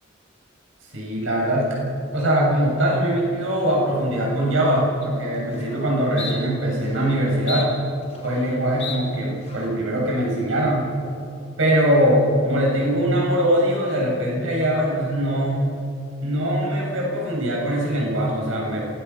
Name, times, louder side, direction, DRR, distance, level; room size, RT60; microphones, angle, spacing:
voice 1, 0.9-1.8 2.1-7.7 8.2-10.9 11.6-15.6 16.2-18.9, right 1 dB, 80° right, -2 dB, 7.3 m, -22 dB
sound 1, 5.0-5.1 5.5-5.8 6.2-6.3 6.8-7.1 7.5-8.5 8.8-9.0 9.4-9.8, left 5 dB, 35° left, 4.4 m, -34 dB
27.0 x 20.0 x 5.9 m, 2.8 s
head